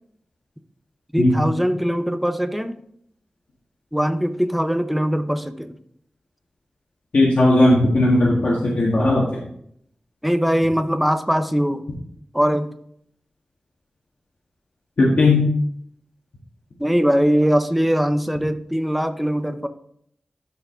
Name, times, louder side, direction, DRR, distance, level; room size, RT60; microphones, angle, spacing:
voice 1, 1.1-2.8 3.9-5.7 10.2-11.8 12.3-12.7 16.8-19.7, equal, 5° right, 9 dB, 0.7 m, -21 dB
voice 2, 7.1-9.4 15.0-15.4, left 2 dB, 70° left, -4 dB, 1.8 m, -17 dB
12.5 x 4.9 x 3.8 m, 0.70 s
wide cardioid pair, 80°, 2 cm